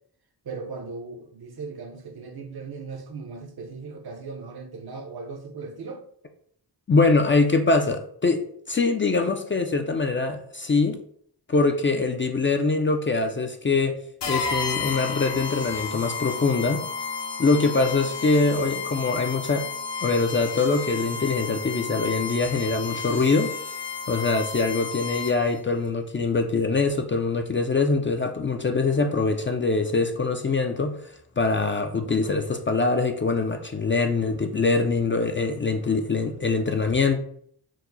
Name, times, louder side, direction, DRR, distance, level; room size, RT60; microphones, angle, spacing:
voice 1, 0.4-6.0, right 4 dB, 60° right, 0.7 m, -38 dB
voice 2, 6.9-8.4 8.7-11.0 11.5-14.0 14.3-16.8 17.4-19.7 20.0-23.5 24.1-31.1 31.4-37.2, left 3 dB, 30° left, 0.4 m, -23 dB
sound 1, 14.2-25.6, left 5 dB, 80° left, 0.8 m, -32 dB
4.6 x 2.0 x 3.8 m
wide cardioid pair, 100°, 42 cm